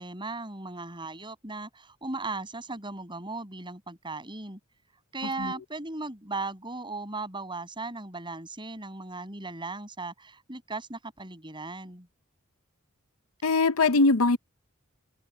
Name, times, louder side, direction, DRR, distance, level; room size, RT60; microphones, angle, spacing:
voice 1, 0.0-4.6 5.1-12.1, right 3 dB, 25° right, 6.6 m, -37 dB
voice 2, 13.4-14.4, left 3 dB, 85° left, 0.7 m, -21 dB
head